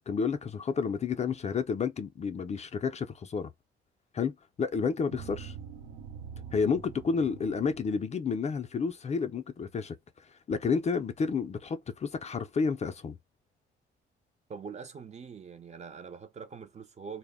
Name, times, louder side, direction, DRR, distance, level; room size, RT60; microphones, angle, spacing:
voice 1, 0.1-3.5 4.1-5.5 6.5-10.0 10.5-13.2, left 5 dB, 35° left, 0.4 m, -30 dB
sound 1, 5.1-7.9, right 7 dB, 85° right, 0.6 m, -44 dB
voice 2, 14.5-17.2, right 6 dB, 35° right, 0.5 m, -43 dB
2.1 x 2.0 x 3.4 m
cardioid pair, 90°, 20 cm